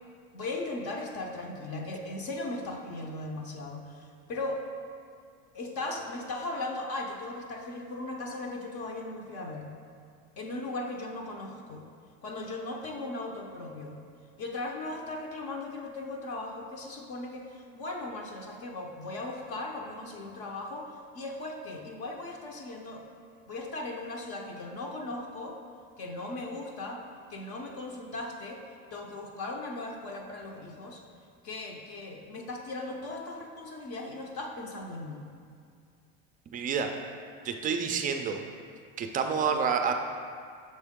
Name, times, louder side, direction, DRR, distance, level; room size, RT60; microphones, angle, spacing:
voice 1, 0.3-4.6 5.5-9.7 10.4-11.8 12.2-14.0 14.4-23.0 23.5-25.6 26.0-27.0 27.3-28.6 28.9-31.0 31.4-35.3, left 2 dB, 45° left, 1 dB, 0.7 m, -38 dB
voice 2, 36.5-36.9 37.4-38.4 39.0-39.9, right 6 dB, 25° right, 5 dB, 0.3 m, -28 dB
6.4 x 4.4 x 3.6 m, 2.2 s
supercardioid pair, 130°, 32 cm